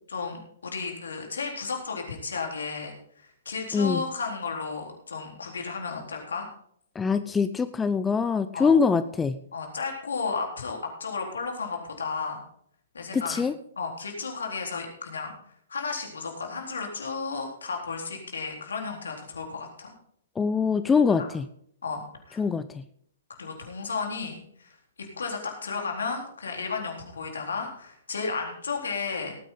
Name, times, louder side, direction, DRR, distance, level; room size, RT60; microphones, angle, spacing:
voice 1, 0.1-6.5 8.5-8.7 9.5-12.4 12.9-13.4 13.8-15.3 15.7-19.9 21.2-21.3 21.8-22.4 23.4-24.7 25.0-29.4, left 4 dB, 70° left, 2 dB, 3.9 m, -33 dB
voice 2, 3.7-4.0 7.0-9.4 13.1-13.5 20.4-21.5 22.4-22.8, left 5 dB, 10° left, 11 dB, 0.6 m, -24 dB
18.5 x 9.1 x 3.9 m, 0.66 s
figure-of-eight pair, 120°, 0 cm